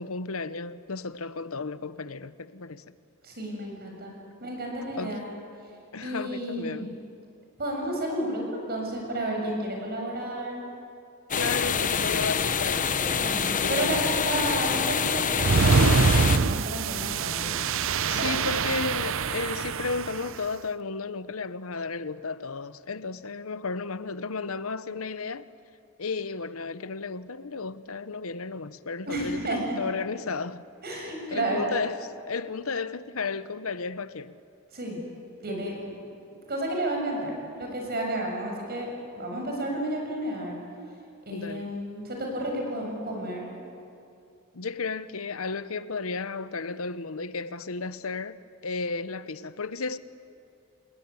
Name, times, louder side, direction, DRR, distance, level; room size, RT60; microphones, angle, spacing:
voice 1, 0.0-2.8 4.8-5.2 5.9-7.0 11.3-12.8 13.6-14.2 18.1-25.5 26.0-30.6 30.9-31.0 31.3-34.4 41.3-41.7 44.5-48.4 48.6-50.0, left 4 dB, 75° left, 0.9 m, -33 dB
voice 2, 3.2-4.1 4.4-5.2 6.0-6.9 7.6-10.6 13.1-17.6 18.2-18.3 29.1-29.8 30.8-31.7 34.7-35.0 35.4-35.8 36.5-38.9 39.2-40.6 41.3-43.5, right 1 dB, 45° right, 6.9 m, -31 dB
sound 1, 11.3-16.4, left 6 dB, 40° left, 1.0 m, -26 dB
sound 2, 15.4-20.3, right 5 dB, 65° right, 0.7 m, -24 dB
28.0 x 20.5 x 9.7 m
head